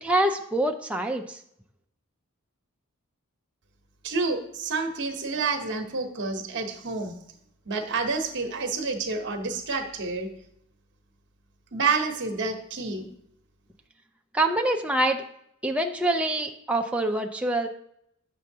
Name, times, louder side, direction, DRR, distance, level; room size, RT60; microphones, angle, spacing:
voice 1, 0.0-1.4 14.3-15.2 15.6-17.7, right 1 dB, 5° right, 3 dB, 0.4 m, -25 dB
voice 2, 4.0-7.1 7.7-10.3 11.7-13.1, right 4 dB, 55° right, 5 dB, 0.9 m, -29 dB
8.4 x 6.3 x 2.7 m, 0.75 s
head